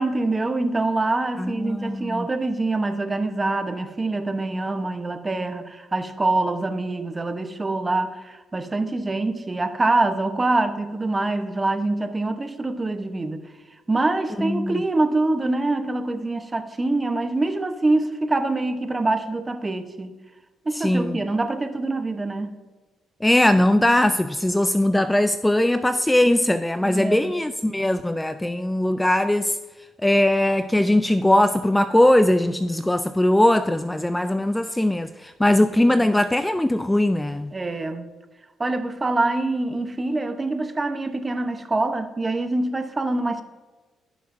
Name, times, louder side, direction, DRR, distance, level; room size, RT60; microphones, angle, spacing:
voice 1, 0.0-13.5 13.9-20.1 20.6-22.5 26.8-27.4 35.9-36.2 37.5-38.1 38.6-43.4, right 2 dB, 20° right, 1.0 m, -25 dB
voice 2, 1.4-2.3 14.4-14.8 20.8-21.2 23.2-29.6 30.0-37.5, left 1 dB, 10° left, 0.3 m, -20 dB
16.5 x 6.5 x 2.7 m
cardioid pair, 90°, 0 cm